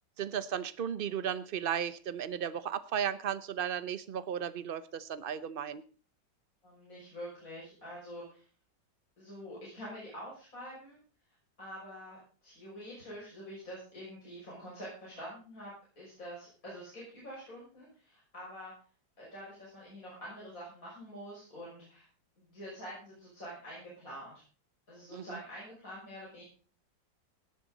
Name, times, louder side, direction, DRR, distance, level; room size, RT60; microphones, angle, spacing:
voice 1, 0.2-5.8 25.1-25.2, right 8 dB, 70° right, 14 dB, 0.5 m, -35 dB
voice 2, 6.6-8.4 9.2-11.0 11.6-18.7 19.2-22.1 22.4-24.3 24.9-26.4, equal, 45° left, -6 dB, 6.8 m, -46 dB
18.0 x 10.5 x 4.0 m, 0.39 s
omnidirectional pair, 2.1 m